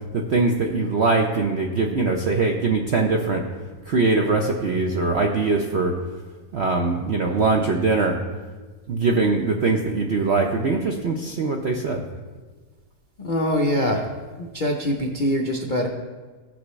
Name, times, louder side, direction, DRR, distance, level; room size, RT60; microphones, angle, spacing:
voice 1, 0.1-3.4 3.9-6.0 6.5-8.2 8.9-12.0, right 3 dB, 65° right, 2 dB, 0.6 m, -22 dB
voice 2, 13.2-14.1 14.4-15.9, equal, 55° left, 1 dB, 0.5 m, -23 dB
16.5 x 6.0 x 3.1 m, 1.4 s
omnidirectional pair, 1.9 m